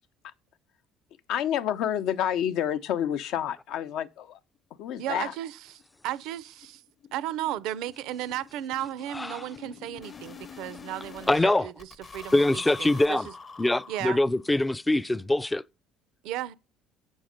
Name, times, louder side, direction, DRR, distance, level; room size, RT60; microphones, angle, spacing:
voice 1, 1.3-4.4 4.8-5.3, left 10 dB, 70° left, 0.6 m, -29 dB
sound 1, 4.5-4.6 5.0-5.1 5.4-5.5 5.8-5.9 6.2-11.4 11.8-14.6, left 5 dB, 30° left, 0.7 m, -46 dB
voice 2, 5.0-6.8 7.1-13.3 13.9-14.2 16.2-16.5, right 13 dB, 75° right, 0.5 m, -35 dB
voice 3, 11.3-11.7 12.3-13.3 13.6-15.6, left 2 dB, 10° left, 0.4 m, -23 dB
7.2 x 6.3 x 5.0 m
cardioid pair, 105°, 0 cm